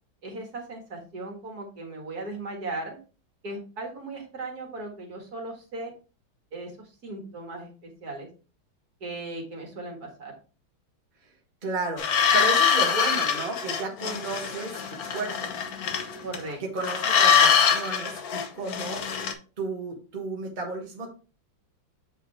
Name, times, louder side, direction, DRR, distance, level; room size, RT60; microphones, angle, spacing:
voice 1, 0.2-3.0 3.4-5.9 6.5-8.3 9.0-10.3 16.2-16.6, right 2 dB, 50° right, 1 dB, 2.3 m, -37 dB
voice 2, 11.6-12.0 12.3-14.8 15.1-15.5 16.6-19.0 19.6-21.1, right 3 dB, 25° right, 0 dB, 1.5 m, -32 dB
sound 1, 12.0-16.5 16.8-19.3, left 7 dB, 55° left, 1.3 m, -24 dB
8.1 x 5.0 x 3.3 m, 0.35 s
omnidirectional pair, 2.1 m